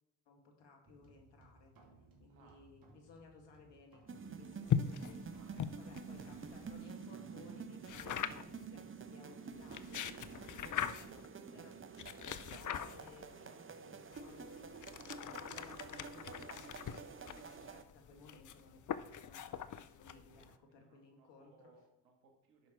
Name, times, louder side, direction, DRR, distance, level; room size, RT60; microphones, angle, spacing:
voice 1, 0.3-1.7 2.2-5.2 5.8-11.7 12.5-21.7, left 3 dB, 65° left, 2 dB, 2.3 m, -60 dB
sound 1, 0.8-20.4, right 3 dB, 45° right, 3.0 m, -67 dB
voice 2, 2.3-2.6 4.5-6.1 20.3-22.7, right 3 dB, 90° right, 2 dB, 1.8 m, -67 dB
sound 2, 4.1-17.8, right 5 dB, 25° right, 0.9 m, -49 dB
sound 3, 4.7-6.8 7.9-8.6 9.5-11.3 12.0-13.3 14.1-20.5, left 8 dB, 40° left, 0.7 m, -41 dB
10.5 x 5.8 x 4.6 m, 0.91 s
hypercardioid pair, 45°, 46 cm